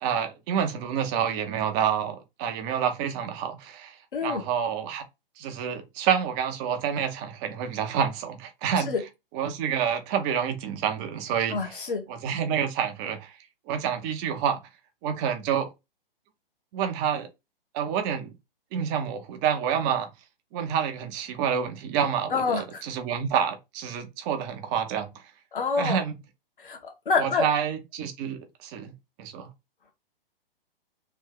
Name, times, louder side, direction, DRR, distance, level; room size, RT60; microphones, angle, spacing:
voice 1, 0.0-5.0 5.4-8.9 9.3-11.7 12.1-13.4 13.7-14.6 15.0-15.7 16.7-17.3 17.7-18.3 18.7-20.1 20.5-25.1 25.8-26.2 27.2-28.9 29.2-29.5, right 8 dB, 20° right, 0.6 m, -28 dB
voice 2, 4.1-4.4 8.8-9.0 11.5-12.0 22.3-22.8 25.5-26.0 26.6-27.4, left 5 dB, 65° left, 1.2 m, -27 dB
3.3 x 2.6 x 3.6 m
figure-of-eight pair, 115°, 29 cm